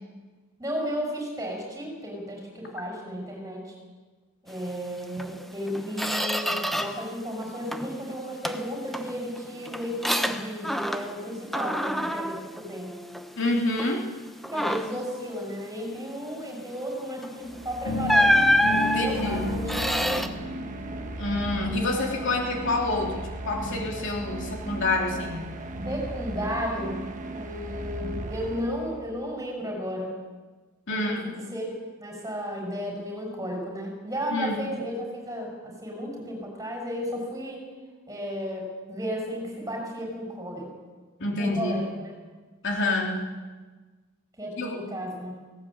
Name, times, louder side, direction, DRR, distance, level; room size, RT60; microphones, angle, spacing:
voice 1, 0.6-3.7 4.4-12.9 14.5-20.2 25.8-27.1 27.3-30.1 30.9-31.6 32.0-37.7 38.1-40.7 41.4-42.1 44.4-45.4, equal, 15° right, 0 dB, 6.4 m, -34 dB
Squeak, 5.2-5.3 5.7-7.1 7.4-8.0 8.4-11.2 11.5-13.4 13.8-14.0 14.4-15.1 17.2-17.4 18.1-20.3, equal, ahead, 1.0 m, -26 dB
voice 2, 13.4-14.0 18.8-19.4 21.2-25.5 30.9-31.3 34.3-34.6 41.2-41.8 42.6-43.3 44.6-44.8, left 2 dB, 55° left, 0 dB, 3.2 m, -27 dB
sound 1, 17.4-29.2, right 1 dB, 35° right, 1.4 m, -36 dB
sound 2, 17.9-23.8, left 3 dB, 75° left, 2.2 m, -35 dB
18.5 x 17.5 x 8.7 m, 1.3 s
head